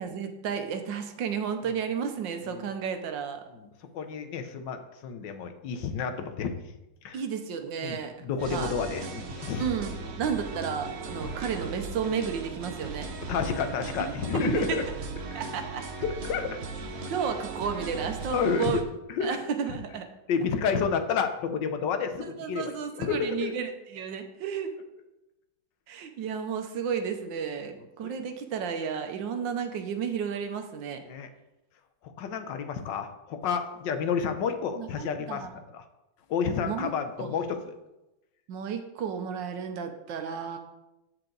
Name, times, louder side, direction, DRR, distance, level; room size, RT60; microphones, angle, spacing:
voice 1, 0.0-3.4 7.1-8.1 8.5-8.7 9.6-13.1 14.3-14.8 15.3-15.8 17.1-18.8 19.2-20.1 22.4-24.7 25.9-31.0 34.7-35.5 36.7-36.9 37.2-37.3 38.5-40.6, right 7 dB, 75° right, 6 dB, 1.5 m, -32 dB
voice 2, 3.9-6.5 7.0-7.2 7.8-9.6 13.3-14.8 16.0-16.6 18.3-18.7 19.1-19.4 20.3-23.4 28.0-28.1 31.1-31.3 32.0-35.5 35.7-35.8 36.3-37.7, left 6 dB, 75° left, 8 dB, 1.4 m, -30 dB
sound 1, 8.4-18.8, right 4 dB, 50° right, 0.8 m, -37 dB
13.5 x 4.7 x 3.9 m, 0.95 s
omnidirectional pair, 2.1 m